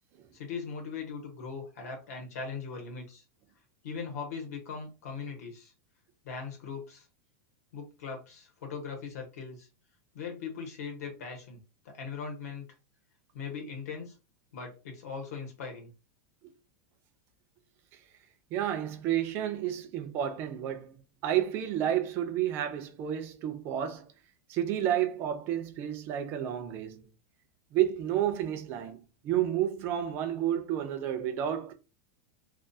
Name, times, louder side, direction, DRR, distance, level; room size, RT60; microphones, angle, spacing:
voice 1, 0.3-3.2 3.8-5.7 6.2-7.1 7.7-9.7 10.1-12.7 13.3-14.2 14.5-15.9, left 5 dB, 70° left, 1.0 m, -40 dB
voice 2, 18.5-24.1 24.5-27.1 27.7-31.7, right 11 dB, 25° right, 0.3 m, -31 dB
2.3 x 2.3 x 2.6 m
supercardioid pair, 175°, 9 cm